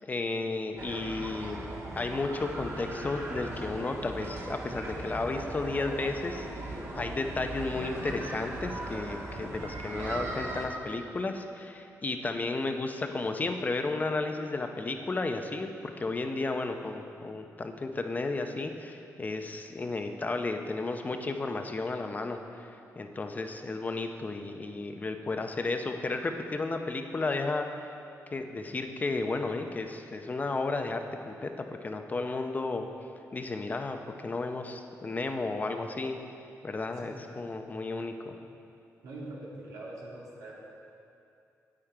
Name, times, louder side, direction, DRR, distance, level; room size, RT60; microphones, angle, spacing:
voice 1, 0.1-1.6 2.0-22.4 23.0-27.7 28.3-32.9 33.3-36.2 36.6-38.3, left 3 dB, 30° left, 5 dB, 0.6 m, -33 dB
sound 1, 0.8-10.7, right 1 dB, 45° right, 1.4 m, -38 dB
voice 2, 37.0-37.5 38.4-38.5 39.0-40.5, right 2 dB, 90° right, -5 dB, 2.2 m, -44 dB
8.7 x 8.7 x 4.6 m, 2.6 s
cardioid pair, 105°, 6 cm